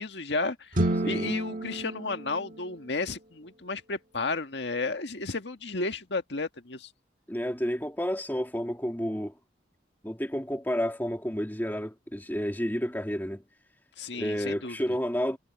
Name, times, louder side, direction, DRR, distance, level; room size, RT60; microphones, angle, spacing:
voice 1, 0.0-6.9 14.0-14.8, left 3 dB, 70° left, 1.8 m, -33 dB
sound 1, 0.7-3.1, right 1 dB, 45° right, 1.9 m, -31 dB
voice 2, 1.0-1.3 7.3-9.3 10.0-13.4 14.1-15.4, equal, 10° left, 2.1 m, -30 dB
head